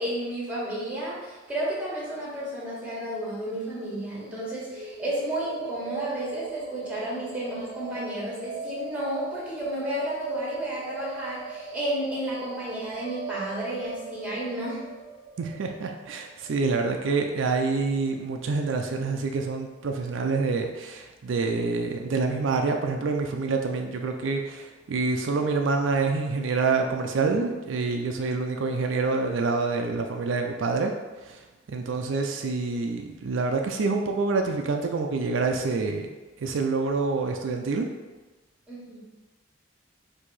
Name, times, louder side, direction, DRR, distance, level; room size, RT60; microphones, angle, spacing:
voice 1, 0.0-14.8 38.7-39.0, right 1 dB, 5° right, -6 dB, 1.4 m, -32 dB
sound 1, 4.7-18.7, right 5 dB, 55° right, 0.8 m, -40 dB
voice 2, 15.4-30.9 31.2-31.4 31.7-36.1 36.4-37.9, right 4 dB, 80° right, 3 dB, 0.4 m, -27 dB
4.6 x 2.7 x 4.1 m, 1.2 s
head